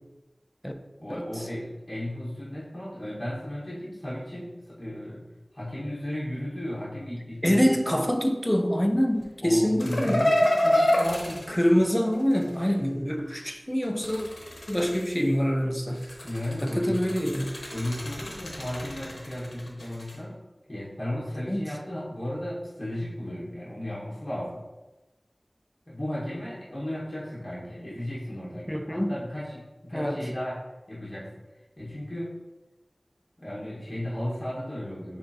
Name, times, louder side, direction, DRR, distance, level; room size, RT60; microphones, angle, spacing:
voice 1, 1.0-5.3 5.5-7.7 9.4-11.6 16.2-17.1 17.7-20.4 20.7-24.6 25.9-30.6 30.9-31.3 31.8-32.3 33.4-35.2, left 1 dB, 30° left, 1.2 m, -34 dB
voice 2, 7.4-10.3 11.5-14.3 14.7-16.1 16.6-17.5 21.5-21.7 28.7-29.1 29.9-30.3, equal, 10° left, 0.4 m, -25 dB
sound 1, 9.8-12.6 13.8-15.4 15.9-20.2, left 1 dB, 85° left, 0.7 m, -28 dB
6.5 x 2.5 x 2.7 m
wide cardioid pair, 45°, 0 cm